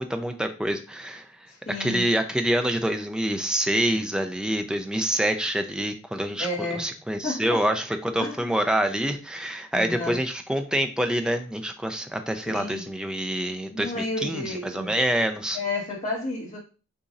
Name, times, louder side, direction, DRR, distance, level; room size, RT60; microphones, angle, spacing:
voice 1, 0.0-1.3 1.8-6.5 6.8-15.6, right 1 dB, 5° right, 0.4 m, -26 dB
voice 2, 1.5-2.1 6.4-6.9 7.2-7.6 8.2-8.5 9.7-10.2 12.5-12.9 13.7-14.9 15.5-16.6, left 2 dB, 40° left, 1.6 m, -31 dB
6.8 x 2.6 x 2.5 m
head